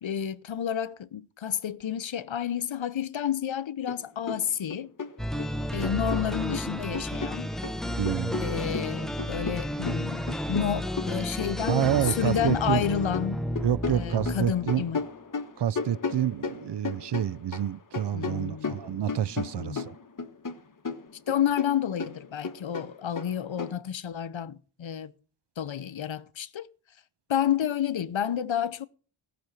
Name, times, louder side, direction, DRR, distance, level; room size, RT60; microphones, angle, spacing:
voice 1, 0.0-4.9 5.7-7.5 8.4-13.4 13.9-15.0 18.1-18.8 19.5-19.9 21.3-25.1 25.6-26.7 27.3-28.9, left 9 dB, 65° left, 0.8 m, -30 dB
sound 1, 3.9-4.0 4.3-5.5 5.8-7.8 8.1-12.8 13.1-17.7 17.9-20.6 20.8-23.7, left 4 dB, 40° left, 1.1 m, -35 dB
sound 2, 5.2-15.0, equal, ahead, 0.7 m, -32 dB
voice 2, 8.0-8.4 11.7-12.9 13.6-14.8 15.6-19.9, right 10 dB, 60° right, 0.5 m, -28 dB
17.0 x 6.0 x 6.6 m
wide cardioid pair, 95°, 50 cm